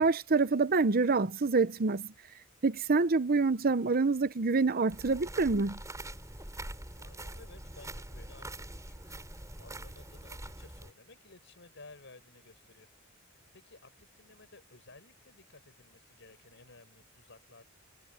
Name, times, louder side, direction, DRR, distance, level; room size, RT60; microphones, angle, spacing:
voice 1, 0.0-2.1 2.6-5.8, right 4 dB, 45° right, 0.8 m, -26 dB
sound 1, 4.9-10.9, right 1 dB, 15° right, 6.3 m, -44 dB
voice 2, 6.9-12.9 13.5-17.6, left 3 dB, 60° left, 7.2 m, -56 dB
head